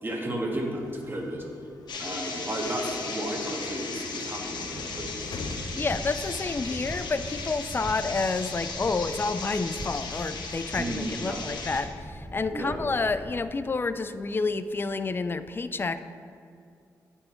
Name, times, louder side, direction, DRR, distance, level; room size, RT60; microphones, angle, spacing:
voice 1, 0.0-1.4 2.0-5.1 10.8-11.4 12.5-12.8, right 1 dB, 30° right, -1 dB, 1.6 m, -33 dB
sound 1, 0.5-7.4, left 2 dB, 55° left, 0.7 m, -43 dB
sound 2, 1.9-11.8, left 4 dB, 75° left, 1.1 m, -37 dB
sound 3, 5.4-13.5, equal, 10° right, 0.7 m, -41 dB
voice 2, 5.8-16.0, left 3 dB, 30° left, 12 dB, 0.4 m, -29 dB
9.4 x 4.5 x 4.4 m, 2.4 s
supercardioid pair, 45°, 8 cm